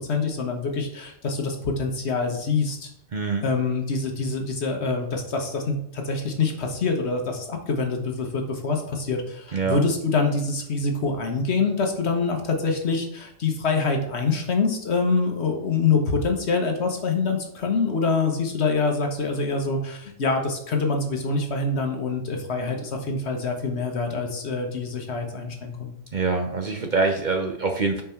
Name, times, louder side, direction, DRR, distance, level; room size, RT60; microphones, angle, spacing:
voice 1, 0.0-2.9 3.4-26.0, left 4 dB, 60° left, 3 dB, 1.3 m, -25 dB
voice 2, 3.1-3.4 9.5-9.8 26.1-28.0, right 4 dB, 45° right, 3 dB, 0.7 m, -24 dB
5.6 x 4.8 x 4.4 m, 0.70 s
omnidirectional pair, 1.3 m